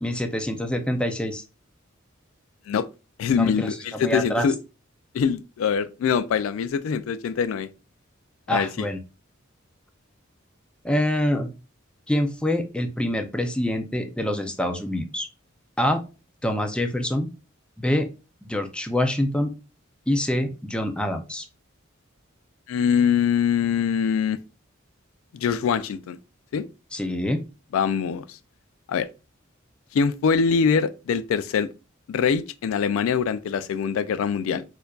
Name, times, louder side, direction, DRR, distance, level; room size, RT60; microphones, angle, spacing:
voice 1, 0.0-1.4 3.4-4.5 8.5-9.0 10.8-11.5 12.1-15.3 15.8-16.0 16.4-17.3 17.8-18.1 18.5-19.5 20.1-21.4 26.9-27.4, left 1 dB, 5° left, 0.4 m, -25 dB
voice 2, 3.2-4.5 5.1-7.7 8.5-8.9 22.7-24.4 25.3-26.2 26.5-26.6 27.7-28.4 28.9-29.1 29.9-31.7 32.1-34.6, left 6 dB, 80° left, 0.3 m, -23 dB
4.4 x 2.5 x 2.3 m
head